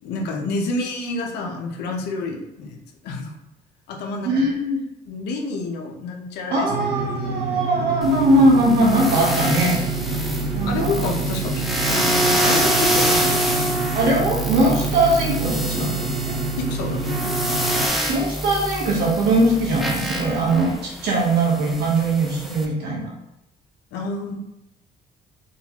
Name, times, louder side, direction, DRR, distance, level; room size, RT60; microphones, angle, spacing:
voice 1, 0.0-2.8 3.0-3.3 3.9-4.6 5.1-7.3 10.1-13.8 16.5-17.4 23.9-24.4, left 3 dB, 80° left, 2 dB, 0.7 m, -29 dB
voice 2, 4.2-4.8 6.5-9.8 10.0-10.2 10.6-10.9 13.9-16.3 18.1-20.7 21.0-23.1, right 1 dB, 75° right, -3 dB, 1.2 m, -20 dB
sound 1, 6.7-17.9, right 4 dB, 40° right, 0.7 m, -28 dB
sound 2, 8.0-22.6, right 1 dB, ahead, 0.5 m, -26 dB
3.8 x 2.3 x 2.9 m, 0.87 s
cardioid pair, 110°, 17 cm